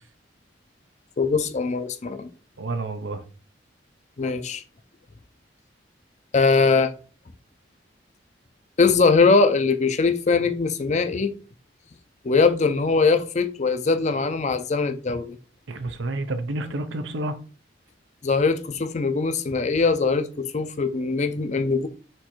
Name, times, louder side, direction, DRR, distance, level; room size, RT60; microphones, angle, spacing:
voice 1, 1.2-2.3 4.2-4.6 6.3-6.9 8.8-11.3 12.2-15.4 18.2-21.9, left 4 dB, 40° left, 0.5 m, -21 dB
voice 2, 2.6-3.2 15.7-17.4, right 2 dB, 75° right, 0.6 m, -29 dB
4.4 x 2.6 x 4.3 m
head